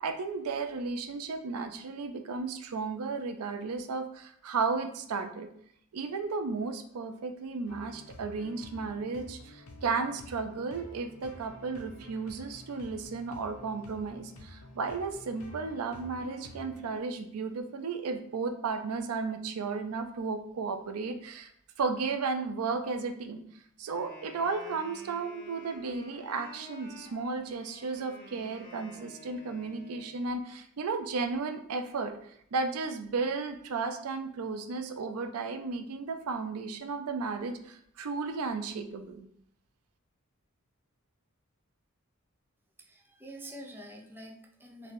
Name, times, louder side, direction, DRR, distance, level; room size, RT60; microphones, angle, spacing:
voice 1, 0.0-5.5 5.9-21.5 21.8-23.4 23.8-32.1 32.5-39.3, right 4 dB, 90° right, 7 dB, 0.5 m, -34 dB
sound 1, 7.7-17.0, left 1 dB, 75° left, 0.7 m, -50 dB
Wind instrument woodwind instrument, 23.9-30.1, left 2 dB, 40° left, 1.5 m, -51 dB
voice 2, 42.8-44.9, right 1 dB, 10° right, 1 dB, 0.5 m, -46 dB
3.3 x 2.6 x 4.0 m, 0.67 s
head